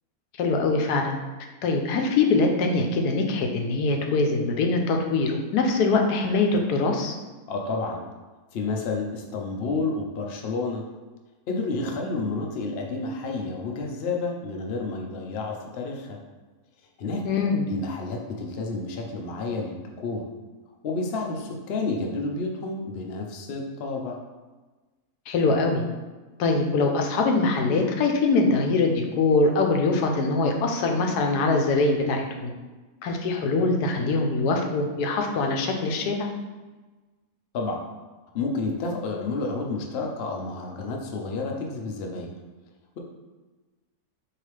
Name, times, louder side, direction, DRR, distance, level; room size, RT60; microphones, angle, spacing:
voice 1, 0.4-1.2 1.6-7.1 17.2-17.7 25.3-25.8 26.4-32.5 33.0-36.3, left 3 dB, 85° left, 3 dB, 1.1 m, -23 dB
voice 2, 7.5-8.0 8.5-10.8 11.5-16.2 17.0-17.2 17.7-20.2 20.8-24.2 37.5-37.8 38.3-42.3, left 3 dB, 60° left, 1 dB, 0.6 m, -30 dB
4.7 x 2.9 x 3.2 m, 1.2 s
omnidirectional pair, 1.7 m